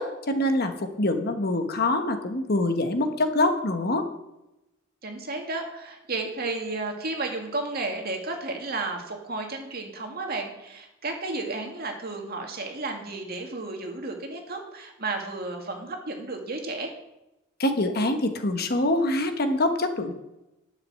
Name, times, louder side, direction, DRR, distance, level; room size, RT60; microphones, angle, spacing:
voice 1, 0.0-4.0 17.6-20.1, left 1 dB, 50° left, 7 dB, 1.3 m, -25 dB
voice 2, 5.0-16.9, right 3 dB, 50° right, 3 dB, 2.1 m, -33 dB
11.0 x 6.8 x 7.6 m, 0.93 s
head